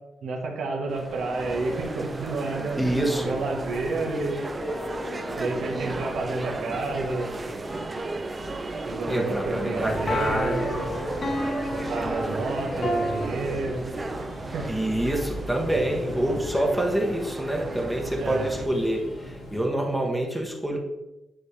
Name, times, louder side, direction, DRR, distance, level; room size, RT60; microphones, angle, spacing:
voice 1, 0.2-2.8 3.2-4.5 5.4-7.3 8.9-10.9 11.7-13.8 14.5-14.7 18.2-18.5, right 3 dB, 80° right, 0 dB, 1.3 m, -30 dB
sound 1, 0.9-18.7, right 2 dB, 30° right, 0.7 m, -34 dB
voice 2, 2.8-3.3 9.1-10.7 14.7-20.8, right 1 dB, 5° right, 0 dB, 1.1 m, -26 dB
sound 2, 4.6-5.6 10.1-13.2, left 1 dB, 50° left, 1.2 m, -32 dB
sound 3, 9.7-19.7, left 1 dB, 75° left, 1.9 m, -40 dB
9.6 x 3.4 x 3.3 m, 0.97 s
cardioid pair, 85°, 0 cm